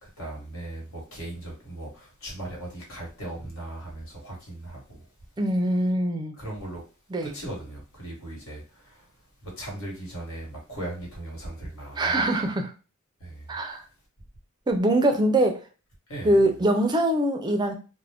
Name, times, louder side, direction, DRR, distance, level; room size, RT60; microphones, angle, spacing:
voice 1, 0.2-5.0 6.4-6.8 7.2-9.0 9.4-12.2 13.2-13.5 16.1-16.4, right 1 dB, 70° left, 1.3 m, -38 dB
voice 2, 5.4-6.4 7.1-7.3 12.0-12.7 13.5-13.9 14.7-15.6 16.2-17.7, right 1 dB, 20° right, 0.4 m, -23 dB
2.4 x 2.1 x 3.4 m
head